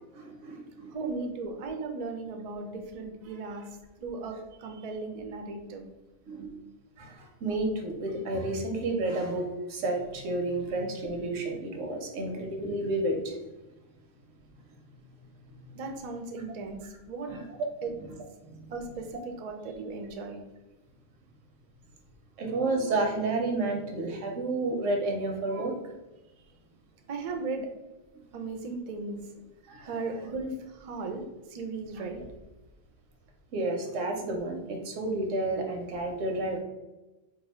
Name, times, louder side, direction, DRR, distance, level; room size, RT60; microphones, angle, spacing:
voice 1, 0.1-0.9 6.3-6.5 7.0-13.4 17.3-17.4 18.0-18.1 18.4-18.7 22.4-25.7 29.7-29.9 33.5-36.6, right 2 dB, 90° right, 2 dB, 1.0 m, -31 dB
voice 2, 0.9-5.8 15.7-17.3 17.8-17.9 18.7-20.4 27.1-27.7 28.3-29.3 29.8-31.2 31.5-32.3, right 3 dB, 65° right, 4 dB, 0.4 m, -36 dB
2.6 x 2.4 x 4.1 m, 1.0 s
omnidirectional pair, 1.3 m